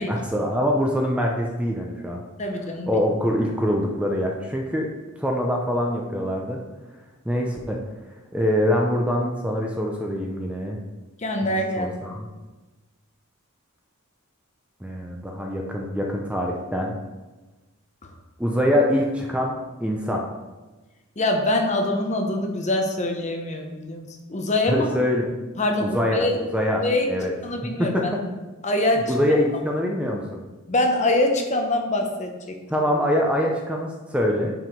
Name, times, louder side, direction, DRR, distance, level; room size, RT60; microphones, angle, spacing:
voice 1, 0.0-2.2 2.9-4.9 5.2-6.6 7.3-7.8 8.3-10.8 11.4-12.3 14.8-16.9 18.4-20.2 24.7-25.4 25.8-26.3 26.5-26.8 27.1-27.3 27.8-28.2 29.1-30.4 32.7-34.5, equal, 5° right, 0 dB, 0.6 m, -24 dB
voice 2, 2.4-2.9 11.2-12.2 21.2-24.9 25.6-26.4 26.8-27.1 27.4-28.1 28.6-29.4 30.7-32.6, left 1 dB, 35° left, 3 dB, 0.9 m, -24 dB
6.1 x 4.8 x 5.1 m, 1.2 s
head